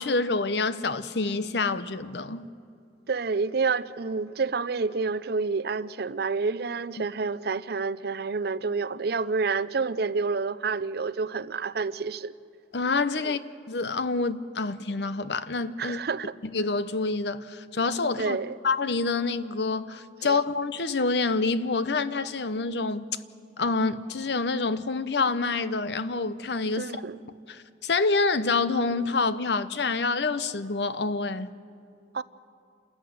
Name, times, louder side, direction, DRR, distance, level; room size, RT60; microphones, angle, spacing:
voice 1, 0.0-2.5 7.0-7.1 12.7-13.4 13.7-16.0 16.4-18.4 18.6-23.1 23.6-26.9 27.5-31.5, left 3 dB, 65° left, 0.9 m, -27 dB
voice 2, 3.1-12.3 13.2-13.3 15.8-16.3 18.2-18.6 20.2-20.4 26.8-27.2 32.1-32.2, right 4 dB, 60° right, 0.6 m, -29 dB
28.0 x 14.0 x 9.4 m
head